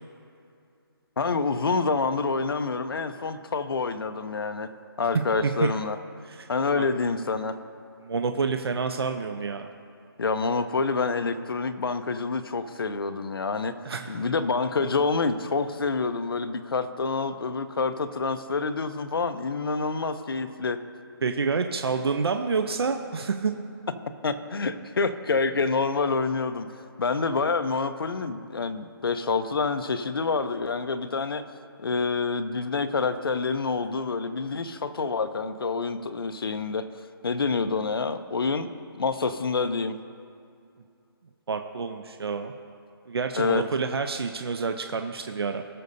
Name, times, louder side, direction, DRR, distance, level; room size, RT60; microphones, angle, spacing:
voice 1, 1.2-4.7 5.0-6.0 6.5-7.6 10.2-13.7 14.1-20.8 24.2-26.7 27.0-31.4 31.8-36.9 37.2-38.7 38.9-39.9 43.3-43.6, left 4 dB, 65° left, 9 dB, 0.7 m, -27 dB
voice 2, 8.0-9.7 13.8-14.2 21.2-23.5 41.5-42.5 43.1-45.6, right 5 dB, 75° right, 6 dB, 0.7 m, -28 dB
19.5 x 6.5 x 2.7 m, 2.5 s
hypercardioid pair, 180°, 13 cm